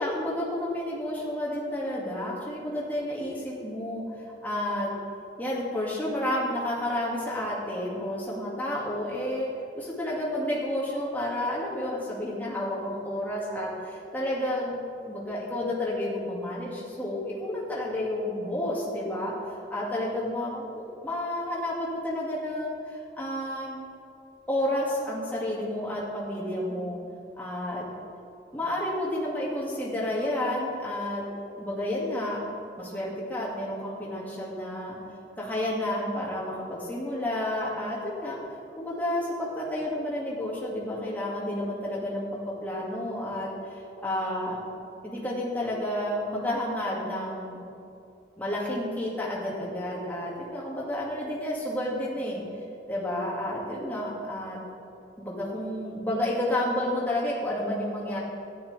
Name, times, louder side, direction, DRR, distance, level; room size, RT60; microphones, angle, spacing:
voice 1, 0.0-4.0 4.4-4.9 5.4-9.5 9.8-14.8 15.0-19.3 19.7-23.8 24.5-27.0 27.4-27.9 28.5-31.2 31.6-32.4 32.8-35.0 35.4-38.4 38.8-43.5 44.0-44.6 45.0-47.6 48.4-52.4 52.9-54.6 55.2-58.2, left 1 dB, 10° left, -6 dB, 2.0 m, -30 dB
13.0 x 10.0 x 3.3 m, 2.6 s
head